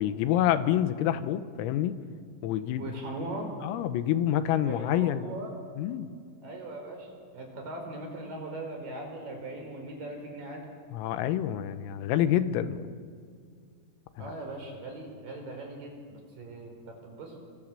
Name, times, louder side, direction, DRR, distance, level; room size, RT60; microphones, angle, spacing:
voice 1, 0.0-2.0 2.4-2.9 3.6-5.3 5.8-6.1 10.9-12.9 14.2-14.3, left 11 dB, 90° left, 11 dB, 3.8 m, -27 dB
voice 2, 2.8-3.5 4.6-5.5 6.4-10.6 14.2-17.4, right 2 dB, 45° right, 3 dB, 5.7 m, -40 dB
29.0 x 25.0 x 7.7 m, 2.1 s
omnidirectional pair, 6.0 m